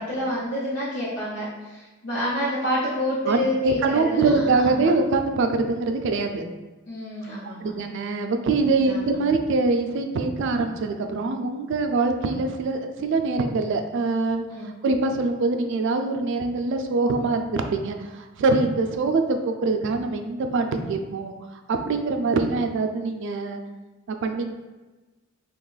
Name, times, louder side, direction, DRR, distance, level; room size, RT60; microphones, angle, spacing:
voice 1, 0.0-4.9 6.9-7.7 8.8-9.1 14.5-14.7, equal, 70° left, -11 dB, 0.9 m, -28 dB
voice 2, 3.6-6.4 7.6-21.3 21.7-23.6 24.1-24.5, right 3 dB, 60° right, 6 dB, 0.3 m, -24 dB
2.9 x 2.3 x 3.8 m, 1.2 s
head